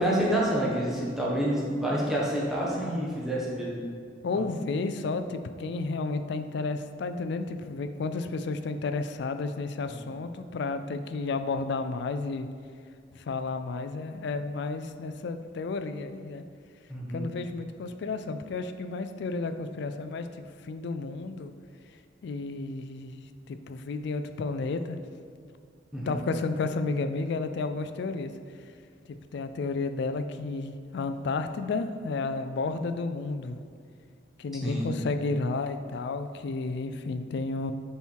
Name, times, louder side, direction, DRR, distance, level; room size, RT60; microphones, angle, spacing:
voice 1, 0.0-3.7 4.3-4.4 16.9-17.2 25.9-26.2 34.6-34.9, right 1 dB, ahead, -5 dB, 1.2 m, -28 dB
voice 2, 2.6-3.0 4.2-12.5 13.2-16.4 17.1-21.5 22.2-25.0 26.1-28.3 29.1-33.6 34.4-37.7, left 3 dB, 65° left, 9 dB, 0.4 m, -32 dB
6.9 x 4.4 x 4.5 m, 2.2 s
head